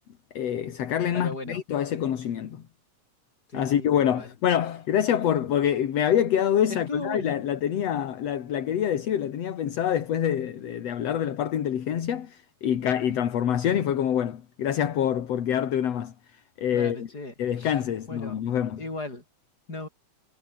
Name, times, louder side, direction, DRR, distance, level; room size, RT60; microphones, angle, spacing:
voice 1, 0.3-2.6 3.5-16.1 16.6-17.1 17.4-18.8, left 9 dB, 60° left, 2.8 m, -26 dB
voice 2, 1.1-1.6 3.5-4.3 6.7-7.3 16.7-17.7 18.1-18.4 18.8-19.2 19.7-19.9, left 2 dB, 30° left, 7.5 m, -37 dB
omnidirectional pair, 3.3 m